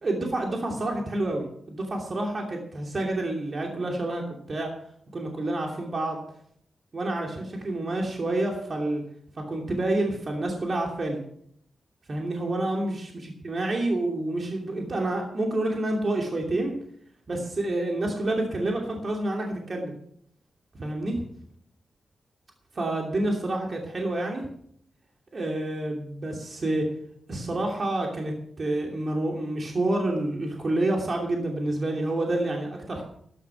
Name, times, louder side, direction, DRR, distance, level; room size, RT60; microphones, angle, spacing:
voice 1, 0.0-4.7 5.1-6.2 6.9-9.0 9.5-11.2 12.1-16.7 17.3-19.9 20.8-21.1 22.7-24.5 25.3-26.9 27.3-33.0, right 2 dB, 45° right, 0 dB, 2.8 m, -28 dB
13.0 x 11.0 x 5.9 m, 0.68 s
cardioid pair, 80°, 0 cm